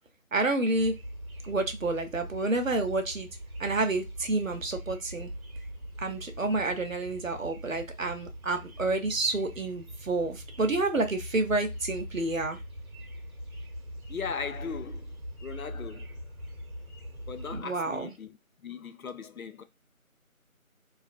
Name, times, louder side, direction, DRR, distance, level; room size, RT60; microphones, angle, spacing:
voice 1, 0.3-0.9 1.4-3.3 3.6-5.3 6.0-12.6 17.5-18.1, right 2 dB, 65° right, 0.8 m, -29 dB
sound 1, 0.7-17.6, equal, 90° right, 1.0 m, -42 dB
voice 2, 14.1-15.1 15.4-16.1 17.3-18.4 18.6-19.6, left 6 dB, 75° left, 0.6 m, -38 dB
2.6 x 2.4 x 2.4 m
figure-of-eight pair, 170°, 42 cm